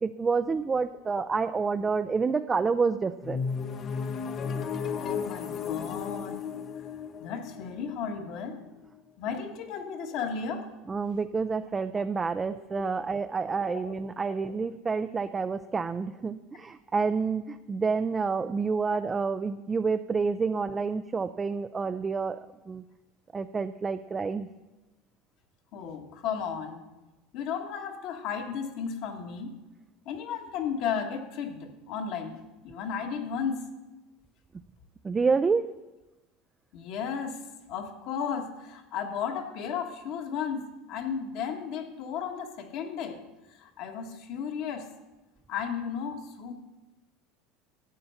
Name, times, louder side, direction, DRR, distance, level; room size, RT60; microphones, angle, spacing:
voice 1, 0.0-3.4 10.9-22.4 22.7-22.8 23.3-24.5 35.0-35.7, right 4 dB, 20° right, 9 dB, 0.4 m, -28 dB
sound 1, 3.2-9.0, left 6 dB, 35° left, 0.6 m, -34 dB
voice 2, 4.8-6.4 7.2-8.6 9.2-10.7 12.7-13.0 13.5-14.0 25.7-26.8 27.3-29.5 30.0-33.6 36.7-43.2 43.5-44.9 45.5-46.5, left 7 dB, 55° left, 4 dB, 1.6 m, -34 dB
12.0 x 8.5 x 5.7 m, 1.1 s
supercardioid pair, 135°, 0 cm